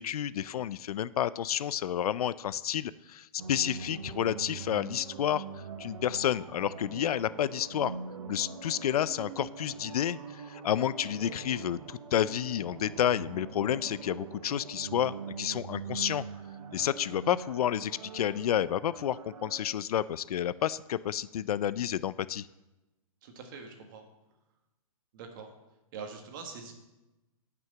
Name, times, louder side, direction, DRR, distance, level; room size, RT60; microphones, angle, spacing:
voice 1, 0.0-5.5 5.8-8.0 8.3-16.2 16.7-22.5, left 10 dB, 80° left, 17 dB, 0.4 m, -30 dB
sound 1, 3.4-19.6, right 5 dB, 60° right, 1.2 m, -43 dB
voice 2, 23.2-24.0 25.1-25.5 25.9-26.7, right 5 dB, 35° right, 4 dB, 1.6 m, -43 dB
9.3 x 6.0 x 7.8 m, 1.0 s
hypercardioid pair, 175°, 19 cm